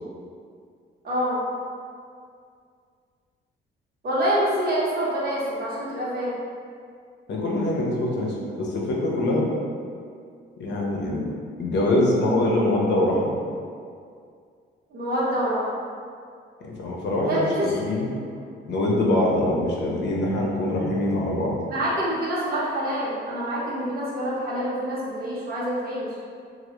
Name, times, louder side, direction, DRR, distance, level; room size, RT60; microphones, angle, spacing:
voice 1, 1.0-1.4 4.0-6.3 14.9-15.7 17.3-17.8 21.7-26.1, equal, 50° right, -7 dB, 0.8 m, -26 dB
voice 2, 7.3-9.5 10.6-11.3 11.6-13.3 16.6-18.2 18.7-21.5, left 1 dB, 60° left, -3 dB, 0.6 m, -24 dB
2.1 x 2.0 x 2.9 m, 2.2 s
cardioid pair, 90°, 20 cm